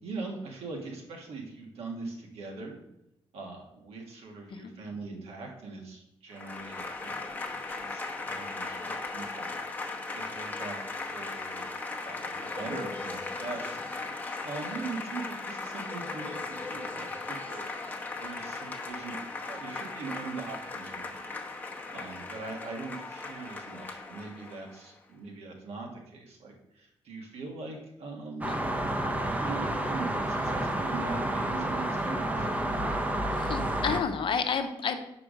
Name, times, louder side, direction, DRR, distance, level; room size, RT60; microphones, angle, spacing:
voice 1, 0.0-2.8 3.3-11.7 12.0-13.8 14.4-17.7 18.2-19.2 19.5-21.3 21.9-28.5 29.2-32.5, right 3 dB, 85° right, 1 dB, 1.6 m, -41 dB
Applause / Crowd, 6.3-24.9, left 3 dB, 15° left, 0.9 m, -37 dB
sound 1, 28.4-34.0, right 1 dB, 15° right, 0.7 m, -30 dB
voice 2, 33.5-35.0, left 6 dB, 55° left, 7 dB, 0.8 m, -30 dB
5.0 x 4.8 x 6.1 m, 0.83 s
cardioid pair, 105°, 10 cm